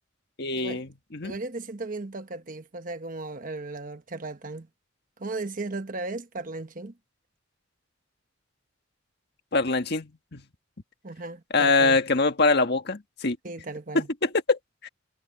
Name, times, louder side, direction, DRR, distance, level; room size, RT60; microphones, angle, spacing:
voice 1, 0.4-1.4 9.5-10.4 11.5-13.4 13.9-14.9, left 3 dB, 55° left, 1.6 m, -24 dB
voice 2, 1.2-4.7 5.2-6.9 11.0-12.0 13.4-14.1, right 3 dB, 45° right, 1.2 m, -36 dB
head